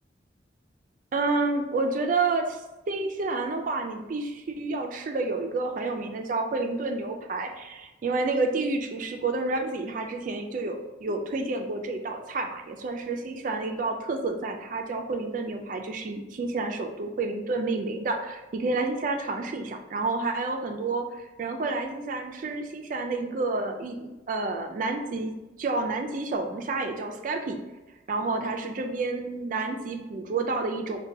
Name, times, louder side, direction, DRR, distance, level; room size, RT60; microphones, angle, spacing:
voice 1, 1.1-2.6 2.9-27.6 28.1-31.1, right 3 dB, 45° right, 4 dB, 0.3 m, -29 dB
5.1 x 2.2 x 2.6 m, 1.1 s
head